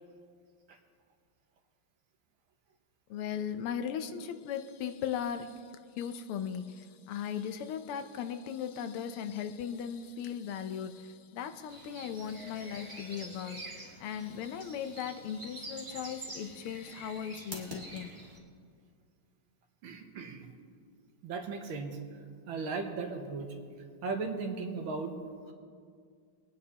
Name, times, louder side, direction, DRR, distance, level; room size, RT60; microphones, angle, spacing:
voice 1, 3.1-5.7 6.0-18.1, left 8 dB, 85° left, 9 dB, 1.6 m, -38 dB
sound 1, 11.7-18.4, right 1 dB, 20° right, 1.8 m, -46 dB
voice 2, 19.8-20.5 21.2-22.0 22.5-23.6 24.0-25.1, right 4 dB, 70° right, 4 dB, 1.8 m, -36 dB
23.0 x 9.6 x 2.9 m, 2.1 s
omnidirectional pair, 2.4 m